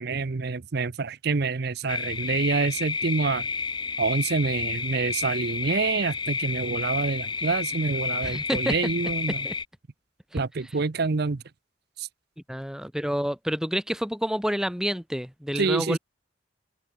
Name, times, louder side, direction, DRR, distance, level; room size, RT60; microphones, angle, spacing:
voice 1, 0.0-3.5 4.0-9.5 10.3-11.4 12.0-12.1 15.5-16.0, right 4 dB, 55° right, 0.6 m, -27 dB
sound 1, 1.9-9.6, left 5 dB, 25° left, 1.1 m, -31 dB
voice 2, 8.2-8.7 9.4-9.5 10.3-10.4 12.5-16.0, equal, 5° right, 1.9 m, -28 dB
head